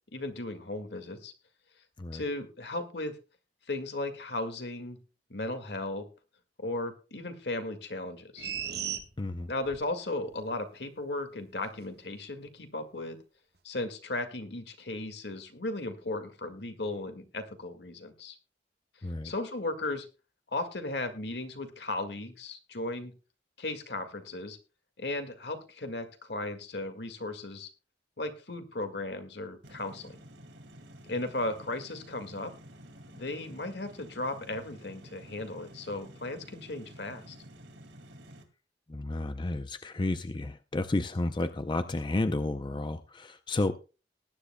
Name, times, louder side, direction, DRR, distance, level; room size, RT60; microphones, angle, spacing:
voice 1, 0.1-1.3 2.1-3.2 3.7-5.0 5.3-6.1 6.6-8.5 9.5-13.2 13.6-18.4 19.2-20.1 20.5-23.1 23.6-24.6 25.0-27.7 28.2-30.2 31.1-32.5 33.1-37.4, left 2 dB, 70° left, 7 dB, 1.9 m, -36 dB
sound 1, 8.4-9.9 10.3-10.4, right 8 dB, 60° right, 1.3 m, -36 dB
voice 2, 9.2-9.5 19.0-19.3 38.9-43.8, left 2 dB, 25° left, 10 dB, 0.5 m, -31 dB
sound 2, 29.6-38.4, equal, 85° right, 2.2 m, -51 dB
19.5 x 10.0 x 2.2 m, 0.32 s
head